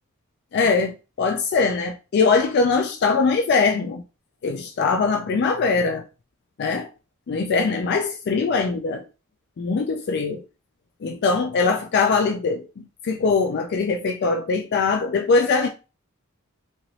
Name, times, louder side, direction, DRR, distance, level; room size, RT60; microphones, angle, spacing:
voice 1, 0.5-4.0 4.4-6.0 6.6-6.9 7.3-9.0 9.6-10.4 11.0-15.7, left 4 dB, 50° left, 0.3 m, -22 dB
2.9 x 2.6 x 3.0 m
head